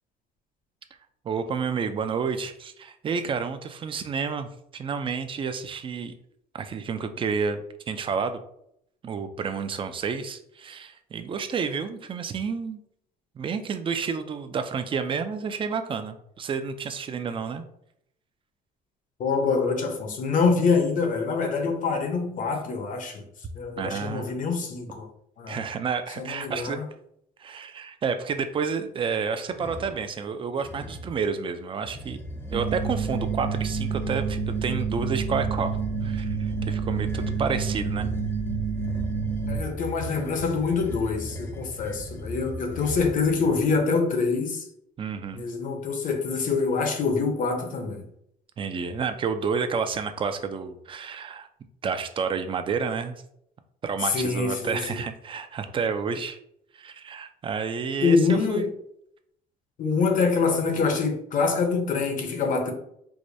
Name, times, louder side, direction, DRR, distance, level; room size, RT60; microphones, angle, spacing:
voice 1, 1.2-6.1 6.5-8.4 9.0-12.8 13.4-17.6 23.8-24.3 25.5-26.8 27.4-32.2 32.5-38.1 45.0-45.4 48.6-51.5 51.8-53.2 53.8-56.4 56.7-58.7, right 5 dB, 30° right, 0.4 m, -30 dB
voice 2, 19.2-23.2 23.5-25.1 25.4-25.6 26.2-26.9 39.5-44.6 45.3-48.1 54.0-55.0 58.0-58.7 59.8-62.7, left 4 dB, 50° left, 0.7 m, -25 dB
sound 1, 29.5-30.0 30.6-31.2 31.8-43.8, equal, 15° left, 0.6 m, -38 dB
sound 2, 32.5-39.6, right 5 dB, 85° right, 1.2 m, -28 dB
4.7 x 2.1 x 2.6 m
cardioid pair, 110°, 17 cm